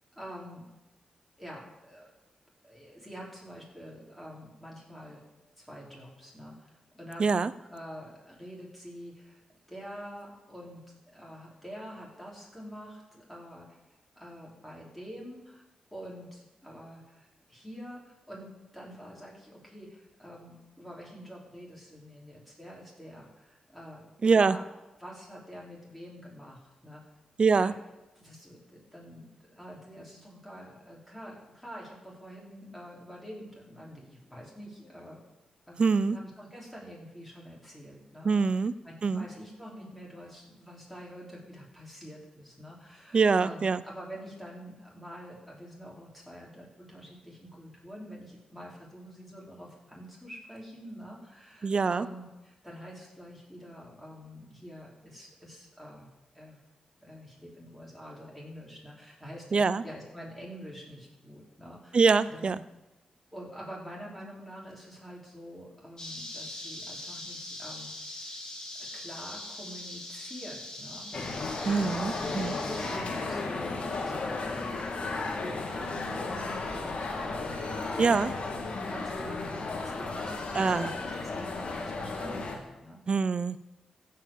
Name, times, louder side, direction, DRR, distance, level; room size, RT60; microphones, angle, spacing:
voice 1, 0.2-0.7 1.4-2.1 2.6-5.2 5.6-9.4 9.7-10.8 11.1-13.8 14.1-15.6 15.9-24.7 25.0-27.0 27.5-27.8 28.1-29.3 29.6-35.2 35.7-38.5 38.8-56.1 56.3-56.6 57.0-62.6 63.3-68.3 68.9-71.2 71.9-78.1 78.7-83.0, equal, 5° left, -4 dB, 4.8 m, -46 dB
voice 2, 7.2-7.5 24.2-24.6 27.4-27.7 35.8-36.2 38.2-38.7 39.0-39.3 43.1-43.8 51.6-52.1 59.5-59.8 61.9-62.6 71.6-72.6 78.0-78.3 80.6-80.9 83.1-83.6, right 4 dB, 50° right, 16 dB, 0.5 m, -24 dB
sound 1, 66.0-73.0, left 1 dB, 30° left, 2.9 m, -42 dB
sound 2, 71.1-82.6, left 3 dB, 60° left, 1.9 m, -34 dB
15.0 x 5.8 x 7.5 m, 1.0 s
cardioid pair, 65°, 2 cm